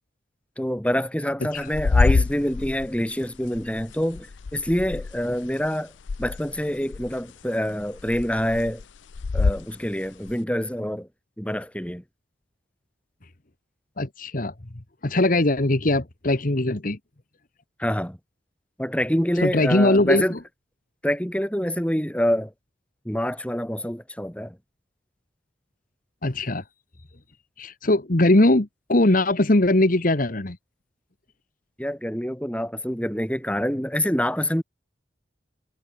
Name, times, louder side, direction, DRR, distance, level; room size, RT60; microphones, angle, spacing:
voice 1, 0.6-5.9 6.2-8.8 9.3-11.1 11.4-12.0 17.8-18.2 18.8-20.4 21.0-22.5 23.0-24.6 31.8-34.6, equal, 5° left, 5.0 m, -26 dB
sound 1, 1.6-5.7 6.0-7.4 7.7-9.7 10.3-10.4, left 4 dB, 85° left, 0.6 m, -26 dB
voice 2, 14.0-14.5 15.0-17.0 19.4-20.2 26.2-26.6 27.6-30.6, left 1 dB, 50° left, 1.5 m, -20 dB
head